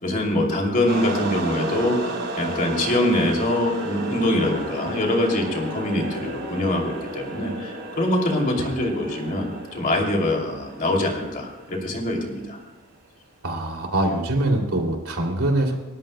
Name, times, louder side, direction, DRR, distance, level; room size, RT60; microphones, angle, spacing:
voice 1, 0.0-12.6, left 1 dB, 40° left, 1 dB, 2.7 m, -24 dB
sound 1, 0.8-12.4, right 2 dB, 50° right, 5.7 m, -33 dB
voice 2, 13.4-15.7, right 1 dB, 85° right, 1 dB, 2.7 m, -23 dB
29.0 x 13.0 x 2.2 m, 1.2 s
head